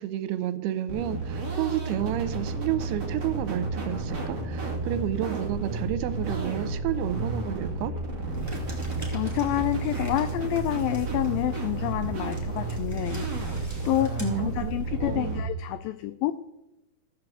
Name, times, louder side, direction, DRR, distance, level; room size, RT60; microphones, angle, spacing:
voice 1, 0.0-7.9 14.2-14.7 15.0-15.4, right 12 dB, 80° right, 12 dB, 2.6 m, -31 dB
sound 1, 0.9-15.4, right 3 dB, 35° right, 2.1 m, -32 dB
sound 2, 8.3-15.0, left 1 dB, 5° left, 2.8 m, -41 dB
voice 2, 9.1-16.3, left 15 dB, 85° left, 11 dB, 2.0 m, -28 dB
14.5 x 6.0 x 7.6 m, 0.93 s
omnidirectional pair, 4.7 m